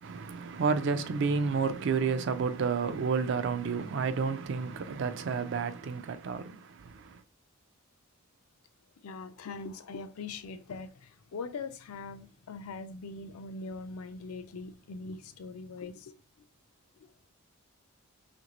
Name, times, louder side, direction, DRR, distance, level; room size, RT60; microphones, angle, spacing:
voice 1, 0.0-7.2, right 5 dB, 55° right, 0.3 m, -30 dB
voice 2, 9.0-16.5 16.9-17.1, left 4 dB, 85° left, 0.4 m, -42 dB
3.2 x 2.5 x 2.9 m
head